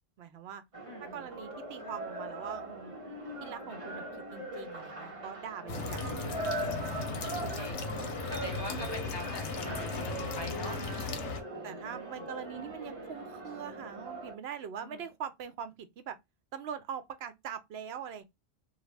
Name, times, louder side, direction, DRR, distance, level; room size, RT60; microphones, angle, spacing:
voice 1, 0.2-0.6 1.0-2.9 3.4-4.0 4.3-6.1 6.9-7.7 10.6-11.4 11.6-16.2 16.5-18.2, right 8 dB, 70° right, 0.8 m, -43 dB
sound 1, 0.7-14.3, right 1 dB, 30° right, 0.9 m, -40 dB
voice 2, 0.8-1.3 6.1-10.8 11.5-12.3 14.8-15.0, left 1 dB, 30° left, 0.6 m, -45 dB
sound 2, 5.7-11.4, left 4 dB, 90° left, 1.0 m, -37 dB
2.7 x 2.3 x 3.1 m
omnidirectional pair, 1.1 m